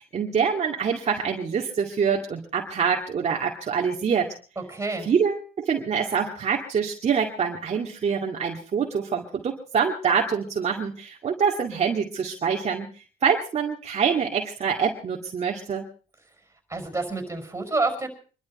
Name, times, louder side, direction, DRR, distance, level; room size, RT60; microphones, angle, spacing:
voice 1, 0.0-4.3 5.0-12.9 13.2-15.9, right 6 dB, 40° right, 0 dB, 2.2 m, -25 dB
voice 2, 4.7-5.1 16.7-18.1, right 3 dB, 15° right, 5 dB, 5.4 m, -28 dB
25.0 x 12.5 x 4.3 m, 0.38 s
cardioid pair, 110°, 17 cm